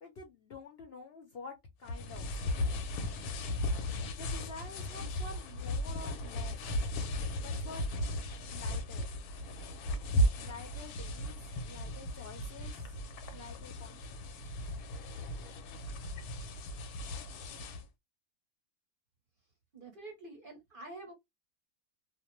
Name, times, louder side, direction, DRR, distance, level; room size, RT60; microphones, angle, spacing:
voice 1, 0.0-1.5 1.8-2.3 4.2-6.6 7.4-7.8 8.5-9.1 10.4-13.0 13.3-14.6, left 4 dB, 60° left, 0.7 m, -49 dB
sound 1, 1.9-17.8, equal, 90° left, 1.1 m, -36 dB
voice 2, 19.7-21.1, right 2 dB, 45° right, 0.8 m, -47 dB
2.5 x 2.0 x 2.9 m
omnidirectional pair, 1.5 m